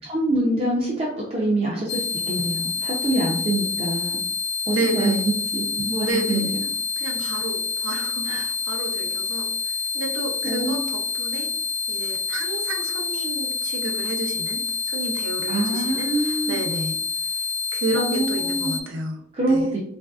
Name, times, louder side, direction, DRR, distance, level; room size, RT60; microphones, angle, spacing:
voice 1, 0.0-4.2 4.7-6.5 8.2-8.5 10.4-10.9 15.5-16.6 18.0-18.8 19.3-19.8, right 1 dB, 30° right, -4 dB, 0.5 m, -25 dB
sound 1, 1.9-18.8, left 5 dB, 60° left, 0.3 m, -27 dB
voice 2, 4.7-5.2 6.0-6.4 7.0-9.5 9.9-11.5 11.9-17.0 17.7-19.2 19.5-19.7, right 2 dB, 80° right, 3 dB, 0.6 m, -30 dB
3.2 x 2.6 x 2.3 m, 0.68 s
head